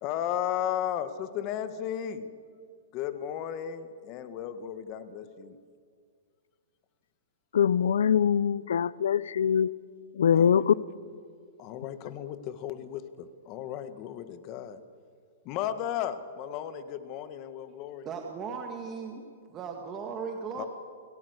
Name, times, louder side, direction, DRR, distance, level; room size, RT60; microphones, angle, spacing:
voice 1, 0.0-2.3 2.9-5.6 10.3-10.6 11.6-14.8 15.4-18.1 20.5-20.7, left 10 dB, 30° left, 11 dB, 1.6 m, -35 dB
voice 2, 7.5-9.8 10.1-10.7, left 8 dB, 80° left, 21 dB, 0.7 m, -23 dB
voice 3, 18.0-19.2 19.5-20.7, right 6 dB, 20° right, 2 dB, 2.0 m, -37 dB
29.0 x 18.0 x 8.1 m, 2.1 s
hypercardioid pair, 160°, 0 cm